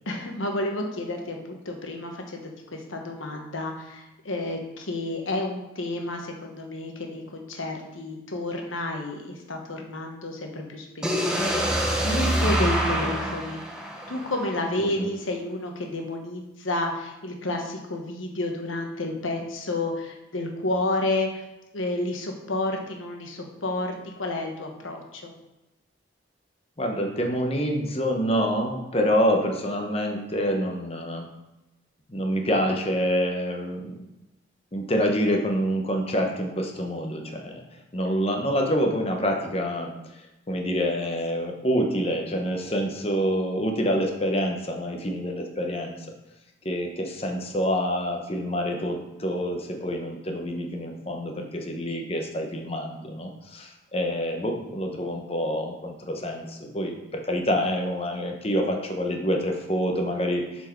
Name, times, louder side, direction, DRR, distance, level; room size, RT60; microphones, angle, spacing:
voice 1, 0.0-13.6 14.1-21.4 21.7-25.3, left 2 dB, 85° left, 2 dB, 1.3 m, -31 dB
sound 1, 11.0-14.9, equal, 5° right, 0.8 m, -26 dB
voice 2, 26.8-31.3 32.1-34.1 34.7-37.6 37.9-39.9 40.5-46.1 46.6-60.7, equal, 30° left, 2 dB, 0.9 m, -27 dB
7.3 x 4.6 x 4.6 m, 0.96 s
head